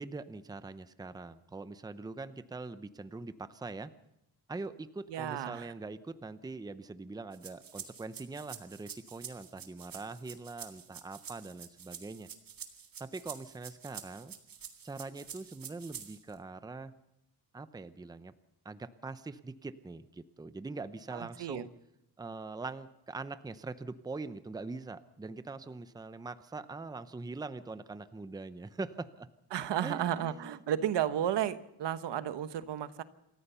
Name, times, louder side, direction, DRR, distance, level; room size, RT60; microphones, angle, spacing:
voice 1, 0.0-3.9 4.5-12.3 13.0-14.3 14.8-16.9 17.5-18.3 18.6-21.7 22.2-29.3 29.7-30.6, right 3 dB, 10° right, 12 dB, 0.7 m, -43 dB
voice 2, 5.1-5.7 21.1-21.6 29.5-33.0, right 10 dB, 80° right, 12 dB, 1.2 m, -33 dB
sound 1, 7.3-16.4, right 8 dB, 55° right, 2.1 m, -48 dB
27.5 x 14.0 x 6.9 m, 0.86 s
cardioid pair, 140°, 41 cm